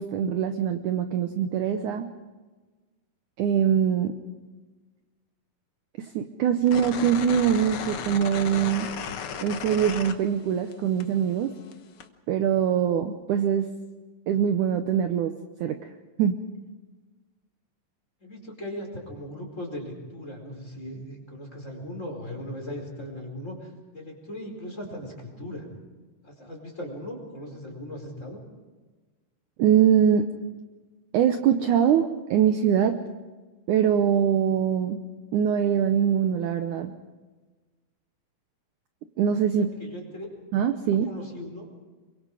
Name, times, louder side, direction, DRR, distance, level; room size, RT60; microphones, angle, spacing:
voice 1, 0.0-2.1 3.4-4.1 6.0-8.9 9.4-11.5 12.3-13.7 14.3-15.3 15.6-15.8 16.2-16.4 29.6-30.3 31.1-32.9 33.7-35.0 35.3-36.9 39.2-39.7 40.5-41.1, right 8 dB, 70° right, 7 dB, 2.0 m, -23 dB
sound 1, 6.7-10.7 11.0-12.1, left 7 dB, 85° left, 1.2 m, -35 dB
voice 2, 18.2-25.7 26.2-28.4 39.5-40.3 40.9-41.8, left 1 dB, 20° left, 1 dB, 4.7 m, -38 dB
27.5 x 23.5 x 5.0 m, 1.3 s
omnidirectional pair, 4.3 m